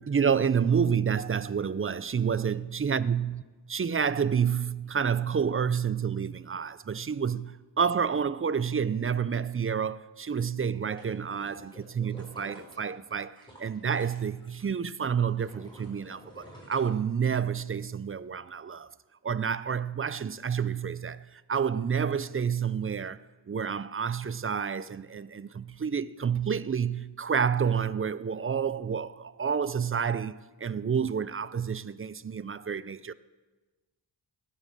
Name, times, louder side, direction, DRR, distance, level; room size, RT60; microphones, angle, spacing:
voice 1, 0.0-3.4 3.7-18.9 19.2-23.2 23.5-33.1, right 7 dB, 30° right, 0.4 m, -29 dB
sound 1, 10.6-14.7 15.0-17.6 18.0-18.1, equal, 10° left, 4.7 m, -51 dB
18.5 x 7.3 x 6.5 m
wide cardioid pair, 70°, 48 cm